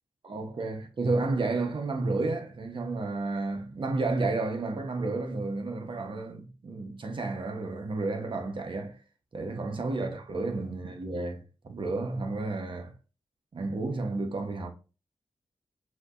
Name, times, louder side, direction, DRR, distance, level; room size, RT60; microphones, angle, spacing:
voice 1, 0.2-9.0 9.3-11.4 11.7-12.9 13.5-14.7, right 3 dB, 60° right, 1.1 m, -31 dB
6.3 x 2.9 x 2.6 m
cardioid pair, 50°, 10 cm